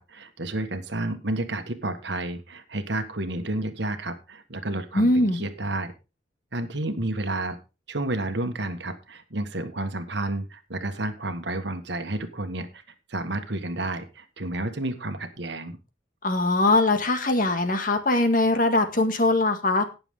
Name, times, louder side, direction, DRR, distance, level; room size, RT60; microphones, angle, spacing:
voice 1, 0.0-5.9 6.5-7.6 7.9-12.7 13.1-15.8, right 2 dB, 60° right, 8 dB, 1.5 m, -31 dB
voice 2, 4.9-5.5 16.2-19.8, left 2 dB, 45° left, 7 dB, 1.8 m, -21 dB
18.5 x 7.0 x 3.7 m, 0.30 s
head